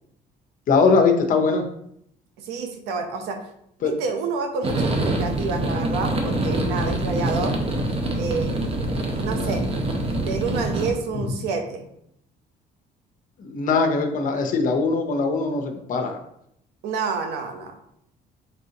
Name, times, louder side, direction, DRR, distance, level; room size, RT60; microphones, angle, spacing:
voice 1, 0.7-1.6 3.8-3.9 9.3-9.5 13.4-16.2, left 4 dB, 50° left, 4 dB, 0.7 m, -21 dB
voice 2, 2.4-3.4 3.8-7.6 8.1-8.7 9.2-9.7 10.2-11.9 16.8-17.8, right 4 dB, 85° right, 5 dB, 0.7 m, -28 dB
sound 1, 4.6-10.9, right 1 dB, 35° right, 0.8 m, -25 dB
4.0 x 3.6 x 2.8 m, 0.73 s
cardioid pair, 110°, 17 cm